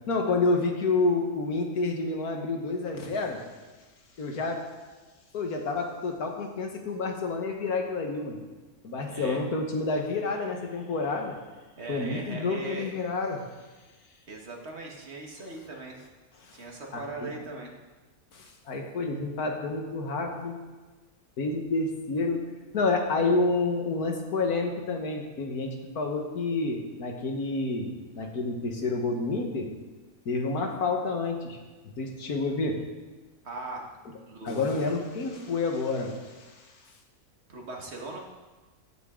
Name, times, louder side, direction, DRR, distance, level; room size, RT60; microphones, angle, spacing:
voice 1, 0.1-3.4 4.2-4.6 5.3-8.4 8.8-11.3 11.9-13.4 16.4-16.6 16.9-17.4 18.3-20.6 21.4-22.4 22.7-29.7 30.3-31.6 31.8-32.8 34.4-36.7, left 3 dB, 80° left, 2 dB, 1.9 m, -29 dB
voice 2, 9.0-9.4 11.8-12.9 14.3-16.0 16.5-17.7 33.4-33.9 34.3-34.9 37.5-38.3, right 3 dB, 45° right, 0 dB, 1.8 m, -39 dB
16.0 x 8.4 x 3.8 m, 1.2 s
omnidirectional pair, 1.6 m